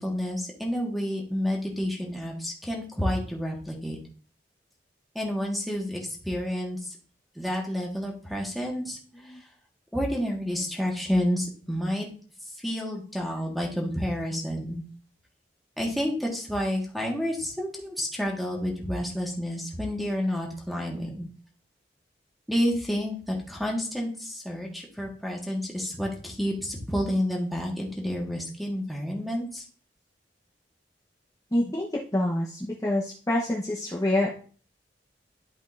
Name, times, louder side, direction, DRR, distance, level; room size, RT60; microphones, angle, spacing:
voice 1, 0.0-4.0 5.1-7.0 7.3-9.4 9.9-12.1 12.6-14.8 15.8-21.3 22.5-29.6, equal, ahead, -2 dB, 1.5 m, -30 dB
voice 2, 31.5-31.9 32.1-34.3, left 1 dB, 20° left, -3 dB, 0.9 m, -26 dB
11.5 x 5.2 x 2.6 m, 0.41 s
head